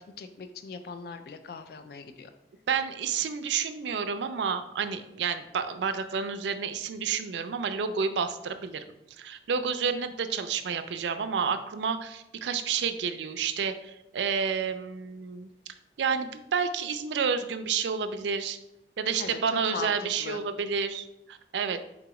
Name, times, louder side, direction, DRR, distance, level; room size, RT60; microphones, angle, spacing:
voice 1, 0.0-2.3 19.2-19.9 20.2-20.4, left 5 dB, 60° left, 9 dB, 0.3 m, -39 dB
voice 2, 2.7-8.8 9.2-15.5 16.0-18.6 19.0-21.8, right 6 dB, 85° right, 10 dB, 0.4 m, -30 dB
3.8 x 3.0 x 4.6 m, 0.88 s
head